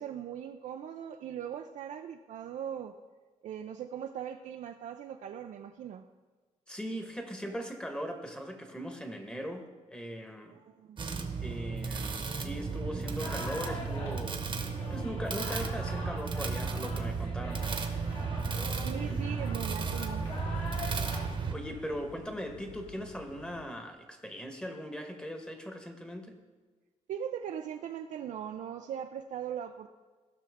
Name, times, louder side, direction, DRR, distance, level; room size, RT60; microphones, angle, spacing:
voice 1, 0.0-2.9 3.4-6.0 10.5-11.3 18.8-20.2 27.1-29.9, right 9 dB, 70° right, 5 dB, 0.5 m, -40 dB
voice 2, 6.7-10.6 11.4-14.5 14.9-17.7 19.0-19.2 21.5-26.4, equal, 5° left, 5 dB, 1.2 m, -40 dB
sound 1, 11.0-21.5, right 5 dB, 40° right, 1.0 m, -34 dB
sound 2, 13.2-22.0, left 2 dB, 50° left, 2.2 m, -43 dB
sound 3, 18.2-23.7, left 8 dB, 85° left, 0.5 m, -51 dB
16.0 x 5.9 x 3.5 m, 1.4 s
cardioid pair, 110°, 13 cm